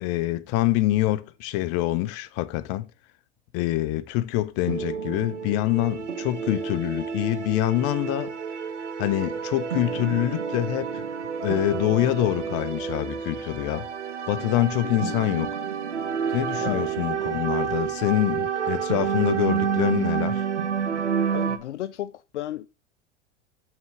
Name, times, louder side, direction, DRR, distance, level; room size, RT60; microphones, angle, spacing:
voice 1, 0.0-2.9 3.5-8.3 9.0-11.0 11.4-13.9 14.3-15.5 16.3-20.5, left 15 dB, 45° left, 0.9 m, -25 dB
sound 1, 4.7-21.6, right 7 dB, 85° right, 1.0 m, -29 dB
voice 2, 14.8-15.2 16.3-16.9 21.3-22.7, left 12 dB, 80° left, 0.5 m, -34 dB
6.1 x 4.5 x 6.0 m
hypercardioid pair, 95°, 35 cm